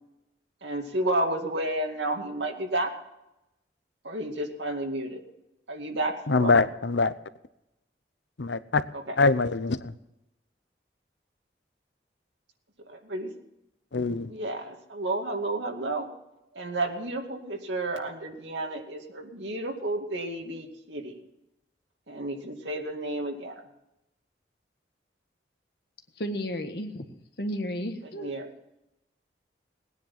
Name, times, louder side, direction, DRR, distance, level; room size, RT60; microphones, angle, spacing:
voice 1, 0.6-2.9 4.0-5.2 5.7-6.6 8.9-9.2 12.9-13.3 14.3-16.1 16.5-21.2 22.1-23.5 28.2-28.5, right 1 dB, 90° right, 2.4 m, -31 dB
voice 2, 6.3-7.1 8.4-8.8 9.2-9.9 13.9-14.3, left 3 dB, 85° left, 0.8 m, -23 dB
voice 3, 26.2-27.0 27.4-28.4, equal, 65° left, 1.6 m, -33 dB
19.0 x 9.9 x 5.8 m
head